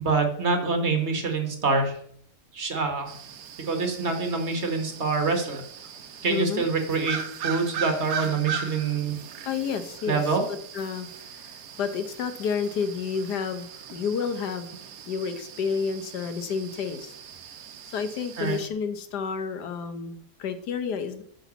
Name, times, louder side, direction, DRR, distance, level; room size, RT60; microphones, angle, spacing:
voice 1, 0.0-2.0 2.5-3.1 3.7-5.6 6.2-9.2 10.1-10.4 18.4-18.6, right 4 dB, 45° right, 4 dB, 1.7 m, -26 dB
sound 1, 3.1-18.7, right 7 dB, 65° right, 1.2 m, -39 dB
voice 2, 5.9-6.7 9.4-14.7 15.0-17.1 17.9-21.2, left 6 dB, 85° left, 9 dB, 1.5 m, -31 dB
10.0 x 4.0 x 6.9 m, 0.63 s
omnidirectional pair, 1.7 m